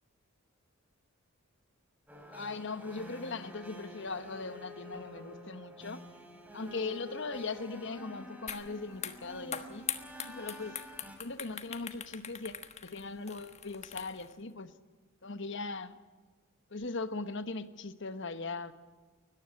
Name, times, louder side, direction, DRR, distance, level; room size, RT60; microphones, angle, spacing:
sound 1, 2.1-11.2, left 1 dB, 10° right, 3.8 m, -49 dB
voice 1, 2.3-6.0 6.5-9.9 10.3-10.8 11.2-12.6 12.8-14.7 15.2-16.0 16.7-18.7, left 3 dB, 60° left, 1.2 m, -39 dB
sound 2, 8.5-8.6 8.9-14.3, left 8 dB, 30° left, 1.4 m, -41 dB
20.5 x 14.5 x 9.9 m
head